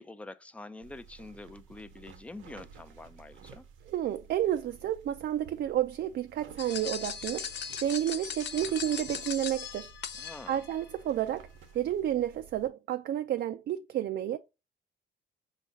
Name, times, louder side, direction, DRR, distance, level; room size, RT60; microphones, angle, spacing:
voice 1, 0.0-3.7 10.2-10.6, left 2 dB, 5° left, 0.4 m, -46 dB
sound 1, 0.8-12.7, right 6 dB, 80° right, 0.8 m, -53 dB
voice 2, 3.9-7.5 7.8-9.9 10.5-11.5 11.7-14.4, right 11 dB, 60° right, 0.4 m, -31 dB
sound 2, 6.6-10.8, left 7 dB, 60° left, 0.6 m, -39 dB
5.2 x 2.4 x 3.9 m
cardioid pair, 90°, 20 cm